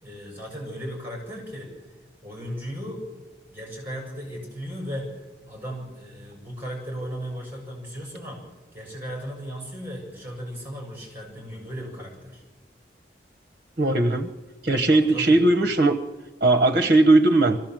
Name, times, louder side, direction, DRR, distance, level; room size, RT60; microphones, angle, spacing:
voice 1, 0.0-1.9 2.2-3.0 3.5-8.4 8.7-12.4 14.9-15.4, equal, 10° right, 0 dB, 6.8 m, -36 dB
voice 2, 13.8-14.3 14.6-16.0 16.4-17.6, right 2 dB, 50° right, 9 dB, 1.1 m, -18 dB
24.5 x 16.0 x 7.7 m, 1.2 s
head